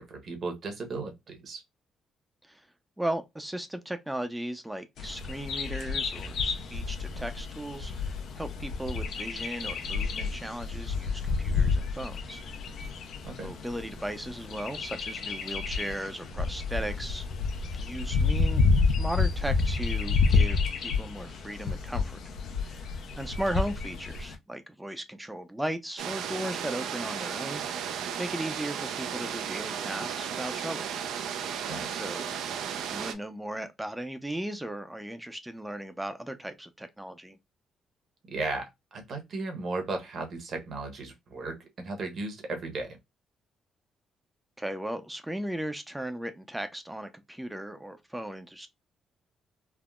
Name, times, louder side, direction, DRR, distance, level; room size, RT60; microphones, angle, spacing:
voice 1, 0.0-1.6 13.3-13.5 31.7-32.1 38.3-43.0, right 3 dB, 55° right, 1.1 m, -36 dB
voice 2, 3.0-12.4 13.4-17.3 17.7-18.6 19.0-22.2 22.6-22.9 23.2-30.9 31.9-37.4 44.6-48.7, right 1 dB, 5° right, 0.5 m, -37 dB
Bird vocalization bird call bird song, 5.0-24.4, left 4 dB, 70° left, 0.5 m, -29 dB
sound 1, 26.0-33.1, right 8 dB, 85° right, 0.4 m, -34 dB
3.5 x 2.0 x 2.3 m
cardioid pair, 90°, 0 cm